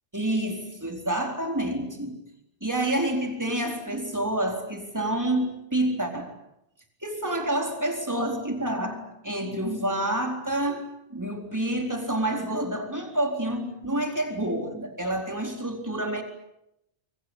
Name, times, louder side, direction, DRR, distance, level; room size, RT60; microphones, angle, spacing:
voice 1, 0.1-2.2 2.6-6.3 7.0-16.2, right 1 dB, 15° right, 3 dB, 4.2 m, -28 dB
27.0 x 24.0 x 8.3 m, 0.84 s
omnidirectional pair, 1.2 m